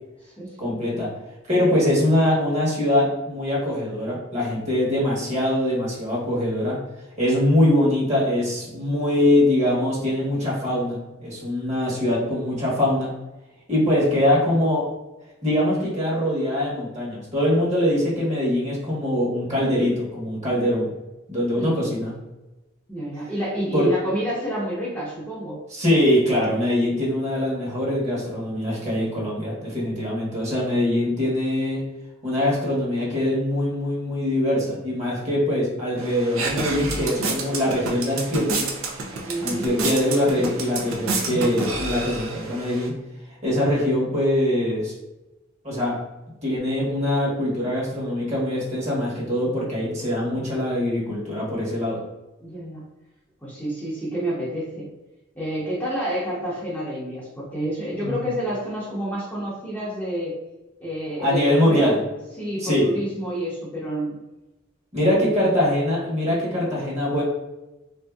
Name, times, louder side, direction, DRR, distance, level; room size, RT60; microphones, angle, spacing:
voice 1, 0.6-1.1 1.5-6.8 7.2-13.1 13.7-14.9 15.4-20.9 21.3-22.1 23.7-23.9 25.7-31.8 32.2-38.7 39.4-42.9 43.4-44.9 45.6-46.0 46.4-52.0 58.0-58.2 61.2-62.0 62.6-62.9 64.9-67.2, left 1 dB, 35° right, -5 dB, 1.2 m, -23 dB
voice 2, 21.6-21.9 22.9-25.6 39.2-39.7 52.4-52.8 53.4-54.9 55.3-60.3 60.8-61.9 62.4-64.2 65.2-65.4, right 1 dB, 5° left, -8 dB, 0.8 m, -29 dB
sound 1, 36.0-42.9, right 3 dB, 80° right, 0.6 m, -29 dB
3.7 x 2.7 x 2.3 m, 1.0 s
head